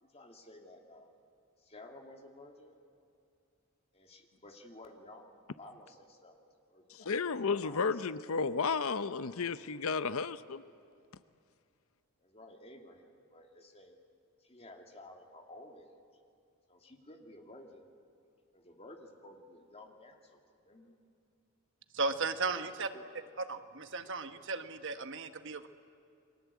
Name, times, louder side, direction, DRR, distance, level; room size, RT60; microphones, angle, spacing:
voice 1, 0.0-1.2 1.6-2.8 3.9-7.1 7.6-8.3 12.2-14.0 14.4-15.9 16.7-17.9 18.5-20.9 22.4-23.1, left 1 dB, 25° left, 3 dB, 2.6 m, -54 dB
voice 2, 6.9-10.6, left 5 dB, 70° left, 13 dB, 0.7 m, -33 dB
voice 3, 21.9-22.9 23.5-25.7, right 4 dB, 55° right, 9 dB, 1.4 m, -35 dB
29.5 x 23.0 x 8.4 m, 2.6 s
head